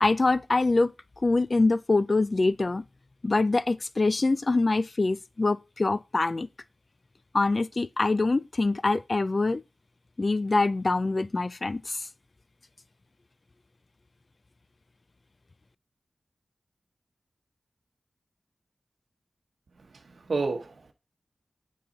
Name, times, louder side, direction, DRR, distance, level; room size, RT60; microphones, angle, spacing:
voice 1, 0.0-0.9 1.2-2.8 3.2-6.5 7.3-9.6 10.2-12.0, left 3 dB, 50° left, 0.4 m, -24 dB
voice 2, 19.8-20.9, right 3 dB, 80° right, 0.9 m, -31 dB
8.9 x 4.8 x 3.8 m
wide cardioid pair, 55°, 0 cm